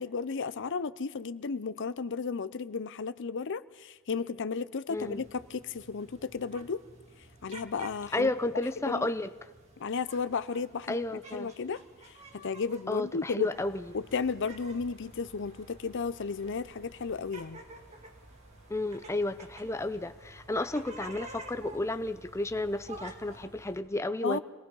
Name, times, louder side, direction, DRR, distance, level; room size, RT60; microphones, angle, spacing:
voice 1, 0.0-6.8 7.4-8.3 8.9-9.1 9.8-11.8 12.3-13.5 13.9-17.6 24.2-24.4, left 5 dB, 60° left, 0.6 m, -34 dB
voice 2, 4.9-5.2 8.1-9.3 10.9-11.5 12.9-13.9 18.7-24.4, left 2 dB, 15° left, 0.6 m, -32 dB
sound 1, 5.0-23.5, right 2 dB, 30° right, 2.1 m, -52 dB
sound 2, 13.5-23.8, right 2 dB, 80° right, 6.1 m, -55 dB
26.0 x 19.0 x 5.5 m
head